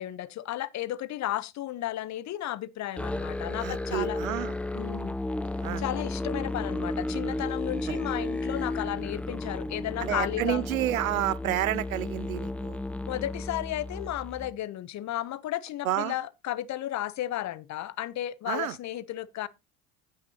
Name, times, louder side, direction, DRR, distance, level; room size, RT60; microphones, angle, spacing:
voice 1, 0.0-4.2 4.7-5.2 5.8-10.6 13.1-19.5, left 13 dB, 45° left, 0.8 m, -33 dB
Musical instrument, 3.0-14.6, left 1 dB, 5° left, 0.5 m, -33 dB
voice 2, 3.6-4.6 5.6-5.8 7.9-8.0 10.0-12.8 15.8-16.1 18.5-18.8, right 13 dB, 90° right, 0.6 m, -30 dB
17.5 x 6.0 x 2.8 m
hypercardioid pair, 70°, 40 cm